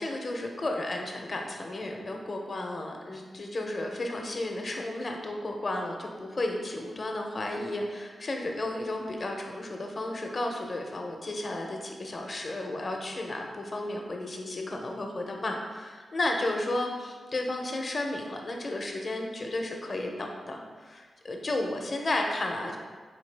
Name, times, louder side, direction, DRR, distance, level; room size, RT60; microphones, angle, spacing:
voice 1, 0.0-22.8, left 2 dB, 35° left, 2 dB, 0.5 m, -33 dB
4.5 x 3.4 x 3.3 m, 1.5 s
wide cardioid pair, 150°, 0 cm